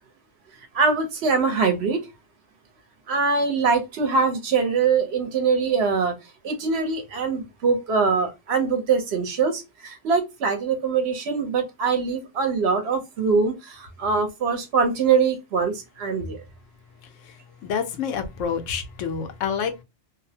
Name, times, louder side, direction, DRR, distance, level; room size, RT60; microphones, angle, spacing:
voice 1, 0.7-2.1 3.1-6.1 6.4-16.4, right 5 dB, 65° right, 0.9 m, -23 dB
voice 2, 17.0-19.8, left 7 dB, 90° left, 1.0 m, -29 dB
2.6 x 2.0 x 2.6 m
omnidirectional pair, 1.3 m